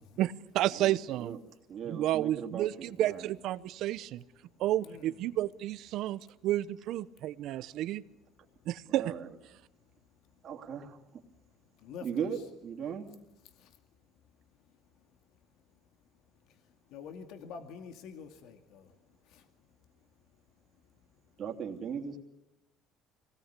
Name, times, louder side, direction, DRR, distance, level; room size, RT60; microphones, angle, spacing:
voice 1, 0.2-1.4 1.9-4.2 4.6-8.0 8.7-9.1, right 14 dB, 65° right, 15 dB, 0.9 m, -31 dB
voice 2, 0.7-1.4 1.7-3.3 7.6-7.7 8.9-9.3 10.4-11.0 12.0-13.1 21.4-22.2, right 7 dB, 45° right, 1 dB, 3.0 m, -38 dB
voice 3, 4.8-5.2 11.8-12.3 13.6-13.8 16.9-18.9 19.3-19.5, left 6 dB, 70° left, 6 dB, 2.3 m, -46 dB
25.0 x 18.5 x 8.3 m, 0.98 s
cardioid pair, 120°, 0 cm